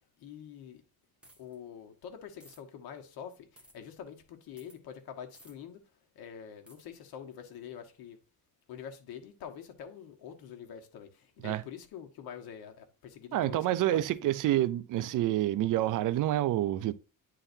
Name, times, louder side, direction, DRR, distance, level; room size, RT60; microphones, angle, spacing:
voice 1, 0.2-0.8 1.4-8.2 8.7-14.3, left 8 dB, 70° left, 1.5 m, -46 dB
sound 1, 1.2-1.6 2.4-2.6 3.6-3.7 4.6-4.8 5.3-5.5 6.7-6.8, right 1 dB, 5° right, 1.6 m, -56 dB
voice 2, 13.3-16.9, right 14 dB, 55° right, 0.5 m, -28 dB
9.9 x 4.0 x 2.7 m
cardioid pair, 135°, 37 cm